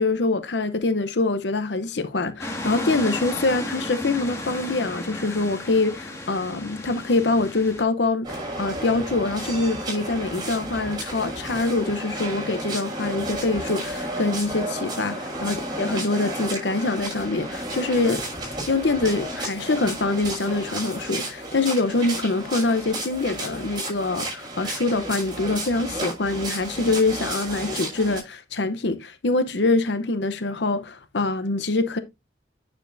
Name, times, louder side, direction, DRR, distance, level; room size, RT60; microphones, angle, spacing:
voice 1, 0.0-18.3 18.7-32.0, left 3 dB, 75° left, 0.8 m, -24 dB
sound 1, 2.4-7.8, left 1 dB, 15° left, 1.9 m, -33 dB
sound 2, 8.2-28.2, right 1 dB, 25° right, 6.2 m, -32 dB
9.2 x 7.0 x 2.6 m
head